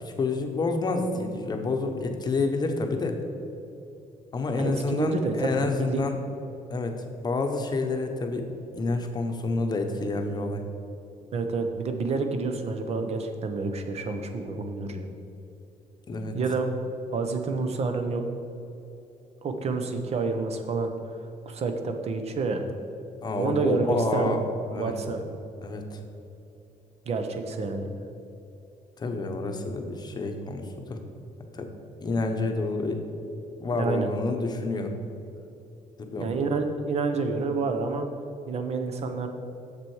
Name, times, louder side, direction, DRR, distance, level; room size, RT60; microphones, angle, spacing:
voice 1, 0.0-3.2 4.3-6.2 6.7-10.6 16.1-16.4 23.2-24.4 24.7-25.2 25.6-26.0 29.0-31.0 31.5-31.7 32.0-33.0 33.6-35.0 36.0-36.3, left 3 dB, 30° left, 4 dB, 0.9 m, -29 dB
voice 2, 4.5-6.0 11.3-15.1 16.3-16.7 17.1-18.2 19.4-20.9 21.5-22.7 23.4-24.4 24.7-25.2 27.1-27.9 33.7-34.1 36.2-38.1 38.5-39.3, right 4 dB, 45° right, 6 dB, 0.9 m, -28 dB
7.4 x 7.0 x 4.8 m, 2.8 s
cardioid pair, 135°, 14 cm